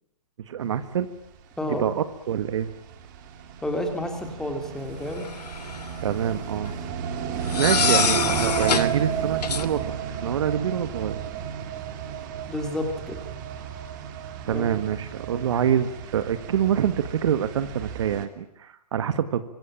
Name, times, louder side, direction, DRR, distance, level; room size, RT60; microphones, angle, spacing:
voice 1, 0.5-1.1 1.7-2.7 6.0-6.7 7.6-9.9 10.2-11.2 14.5-19.4, right 9 dB, 45° right, 12 dB, 1.7 m, -26 dB
voice 2, 1.6-1.9 3.6-5.3 12.5-13.2 14.5-14.8, left 1 dB, 5° left, 5 dB, 3.3 m, -30 dB
sound 1, 1.6-18.2, right 8 dB, 30° right, 3.1 m, -32 dB
sound 2, 5.2-5.9 7.5-8.9 9.4-9.7, left 6 dB, 75° left, 2.9 m, -25 dB
25.5 x 24.0 x 8.8 m, 0.73 s
hypercardioid pair, 165°, 21 cm